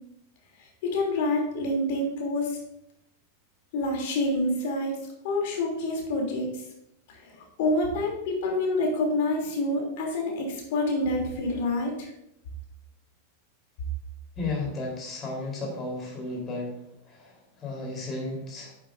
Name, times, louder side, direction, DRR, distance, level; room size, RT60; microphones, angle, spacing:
voice 1, 0.8-2.6 3.7-5.0 5.2-6.6 7.1-12.1, left 2 dB, 50° left, 0 dB, 3.3 m, -27 dB
voice 2, 14.4-16.7 17.0-18.7, left 2 dB, 25° left, -1 dB, 4.1 m, -34 dB
10.0 x 9.6 x 2.7 m, 0.78 s
figure-of-eight pair, 90°, 0 cm